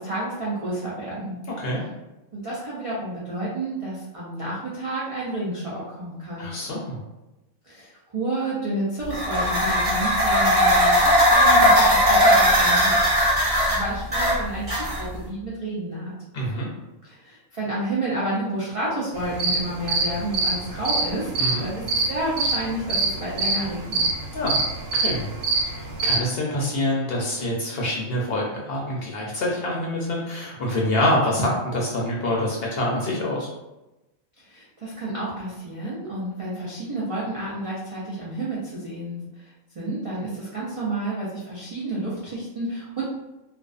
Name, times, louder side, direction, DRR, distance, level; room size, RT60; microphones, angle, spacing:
voice 1, 0.0-1.3 2.3-6.5 7.6-16.1 17.0-24.1 34.4-43.1, right 1 dB, 65° right, -8 dB, 0.3 m, -30 dB
voice 2, 1.5-1.8 6.4-7.0 16.3-16.7 21.4-21.7 24.3-25.3 25.8-33.5, left 1 dB, 60° left, -3 dB, 0.7 m, -26 dB
sound 1, 9.1-15.2, equal, 35° right, 0.6 m, -18 dB
sound 2, 19.2-26.2, right 3 dB, 85° right, 1.1 m, -24 dB
2.4 x 2.2 x 2.4 m, 1.0 s
omnidirectional pair, 1.4 m